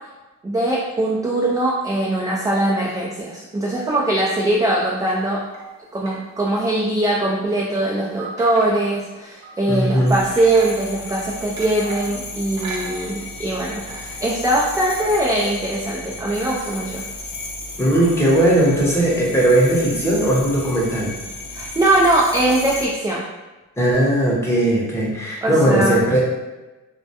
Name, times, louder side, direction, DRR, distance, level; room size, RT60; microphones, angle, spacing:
voice 1, 0.4-5.5 5.9-17.0 21.5-23.2 25.4-26.0, right 1 dB, 10° right, -4 dB, 0.3 m, -21 dB
sound 1, 5.1-6.7 7.0-7.1 8.2-9.1 9.4-9.6 9.9-13.5 13.8-15.4, right 3 dB, 70° right, 0.5 m, -38 dB
voice 2, 9.7-10.2 17.8-21.2 23.8-26.2, right 1 dB, 10° left, -5 dB, 0.7 m, -18 dB
sound 2, 10.1-22.9, left 2 dB, 50° left, 0.6 m, -34 dB
2.2 x 2.1 x 2.8 m, 1.1 s
cardioid pair, 90°, 30 cm